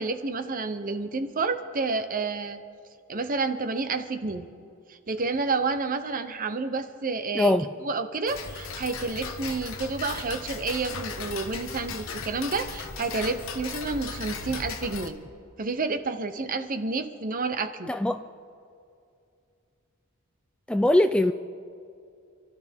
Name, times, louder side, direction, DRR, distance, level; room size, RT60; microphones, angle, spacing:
voice 1, 0.0-2.6 3.1-4.5 4.9-7.5 7.8-15.2 15.6-17.9, right 3 dB, 40° right, 0.9 m, -30 dB
voice 2, 7.3-7.7 17.9-18.2 20.7-21.3, left 1 dB, 5° left, 0.3 m, -21 dB
Tick-tock, 8.3-15.1, left 4 dB, 75° left, 1.1 m, -37 dB
28.5 x 13.0 x 3.6 m
head